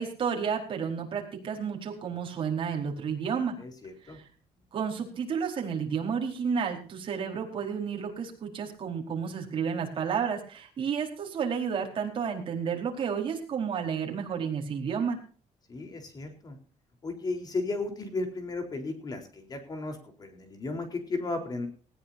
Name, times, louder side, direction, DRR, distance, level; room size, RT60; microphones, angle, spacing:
voice 1, 0.0-3.6 4.1-4.2 4.7-15.2, right 6 dB, 40° right, 1 dB, 4.5 m, -31 dB
voice 2, 3.6-4.2 15.7-16.6 17.0-21.7, left 3 dB, 30° left, 6 dB, 4.1 m, -35 dB
19.0 x 16.5 x 2.8 m, 0.41 s
cardioid pair, 155°, 13 cm